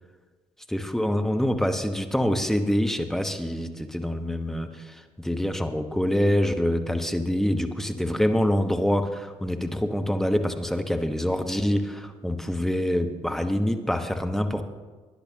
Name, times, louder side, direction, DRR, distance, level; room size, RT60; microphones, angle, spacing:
voice 1, 0.7-14.6, equal, 5° left, 7 dB, 1.0 m, -25 dB
17.5 x 10.0 x 2.8 m, 1.4 s
hypercardioid pair, 50°, 14 cm